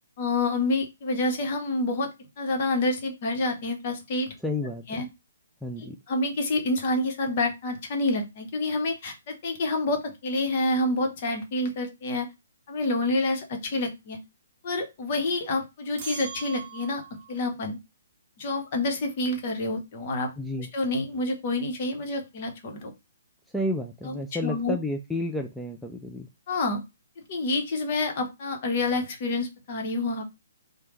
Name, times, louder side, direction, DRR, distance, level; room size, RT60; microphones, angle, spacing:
voice 1, 0.2-2.1 2.4-4.3 4.9-5.1 6.1-12.3 12.7-14.2 14.6-17.0 17.3-17.8 18.4-20.3 20.6-22.9 24.0-24.7 26.5-26.8 27.3-30.2, left 2 dB, 45° left, 4 dB, 0.9 m, -28 dB
voice 2, 4.4-4.8 5.6-6.0 20.4-20.7 23.5-26.3, left 1 dB, ahead, 2 dB, 0.3 m, -31 dB
sound 1, 16.0-17.3, right 6 dB, 35° right, 0.7 m, -40 dB
3.3 x 2.1 x 3.0 m, 0.23 s
figure-of-eight pair, 135°, 0 cm